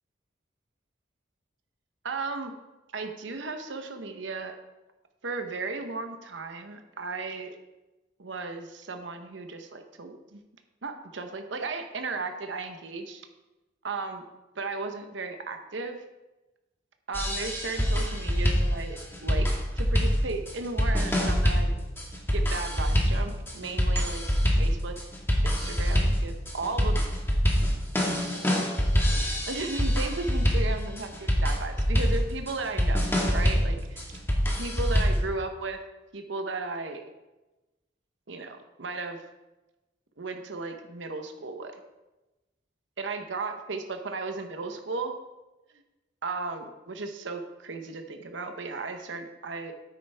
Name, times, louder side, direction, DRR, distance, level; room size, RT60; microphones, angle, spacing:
voice 1, 2.0-2.5 2.9-4.6 5.2-7.6 8.2-10.4 10.8-13.2 13.8-14.2 14.6-16.0 17.1-21.7 22.3-24.2 24.6-25.0 25.4-27.0 29.2-33.0 33.3-34.2 34.6-35.8 36.1-37.0 38.3-39.2 40.2-41.7 43.0-45.1 46.2-49.7, right 3 dB, 75° right, 6 dB, 0.9 m, -35 dB
sound 1, 17.1-35.3, equal, 15° left, 1.5 m, -25 dB
9.9 x 8.6 x 3.4 m, 1.1 s
head